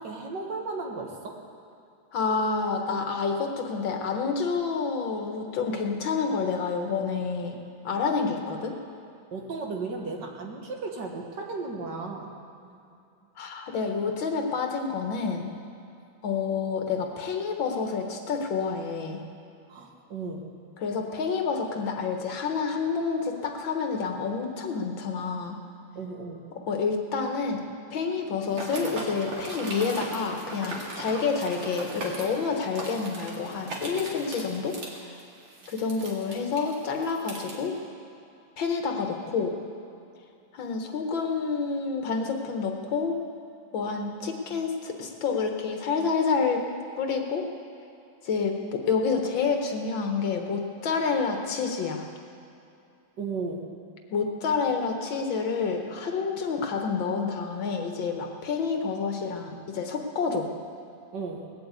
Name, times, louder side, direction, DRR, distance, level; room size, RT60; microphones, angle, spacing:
voice 1, 0.0-1.4 9.3-12.3 12.6-12.8 19.7-20.5 26.0-26.5 53.2-53.7 61.1-61.5, right 3 dB, 65° right, 1 dB, 2.1 m, -35 dB
voice 2, 2.1-7.6 7.8-8.8 13.4-15.5 16.2-19.2 20.8-25.6 26.7-27.6 27.9-35.2 35.7-37.7 38.6-39.6 40.5-43.1 43.7-46.6 47.0-47.5 48.2-52.1 54.1-60.5, left 5 dB, 85° left, 3 dB, 2.1 m, -28 dB
sound 1, 28.5-37.5, right 2 dB, 90° right, 2.9 m, -38 dB
19.5 x 7.9 x 8.3 m, 2.6 s
omnidirectional pair, 2.1 m